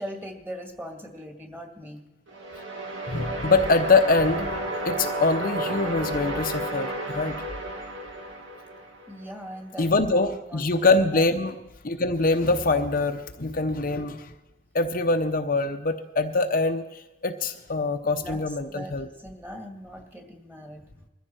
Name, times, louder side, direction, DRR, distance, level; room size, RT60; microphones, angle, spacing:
voice 1, 0.0-2.0 9.1-9.9 10.4-10.6 11.1-11.2 18.0-18.4 18.7-20.8, equal, 10° right, 3 dB, 2.0 m, -39 dB
sound 1, 2.3-9.3, right 1 dB, 75° right, 2.5 m, -32 dB
voice 2, 3.1-4.6 4.8-7.4 9.8-11.5 11.8-14.3 14.7-19.1, left 3 dB, 45° left, 5 dB, 0.8 m, -24 dB
21.0 x 14.5 x 4.5 m, 0.99 s
head